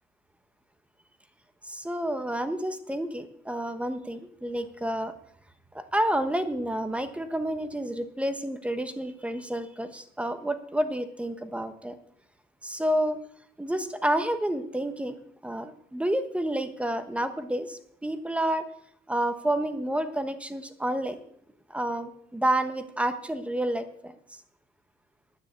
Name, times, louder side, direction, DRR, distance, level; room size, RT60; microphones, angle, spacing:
voice 1, 1.6-5.1 5.7-11.9 12.6-13.2 13.6-15.2 15.4-18.7 19.1-21.2 21.7-24.1, right 1 dB, 5° right, 10 dB, 1.1 m, -29 dB
9.8 x 9.7 x 8.3 m, 0.68 s
cardioid pair, 110°, 17 cm